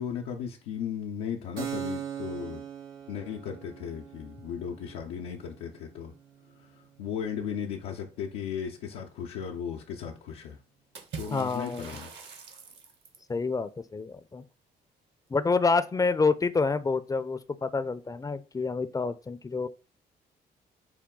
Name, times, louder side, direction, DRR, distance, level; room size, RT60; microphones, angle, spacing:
voice 1, 0.0-2.6 3.1-6.1 6.6-10.6 11.1-12.1, left 8 dB, 85° left, 0.6 m, -36 dB
Keyboard (musical), 1.6-8.9, right 9 dB, 90° right, 0.9 m, -42 dB
Water / Splash splatter, 10.9-13.3, right 5 dB, 65° right, 1.1 m, -43 dB
voice 2, 11.3-12.0 13.3-14.4 15.3-19.7, left 4 dB, 20° left, 0.4 m, -28 dB
4.9 x 2.2 x 3.7 m
supercardioid pair, 60°, 19 cm